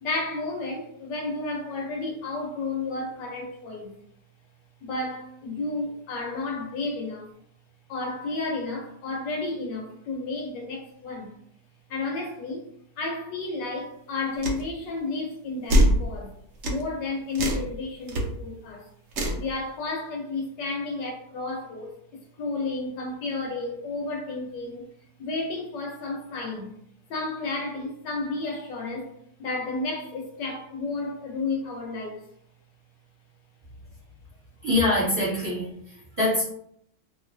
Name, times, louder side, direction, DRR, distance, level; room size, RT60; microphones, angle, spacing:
voice 1, 0.0-3.9 4.8-7.3 7.9-11.3 11.9-12.6 13.0-16.3 16.7-18.9 19.3-24.9 25.2-26.7 27.1-29.1 29.4-32.2, left 3 dB, 80° left, 1 dB, 1.4 m, -32 dB
sound 1, 14.4-14.6 15.7-16.0 16.6-16.8 17.3-17.7 18.1-18.2 19.1-19.4, equal, 90° right, 0.6 m, -21 dB
voice 2, 34.6-36.4, left 1 dB, 20° right, -9 dB, 1.3 m, -24 dB
3.0 x 2.6 x 2.5 m, 0.69 s
omnidirectional pair, 1.9 m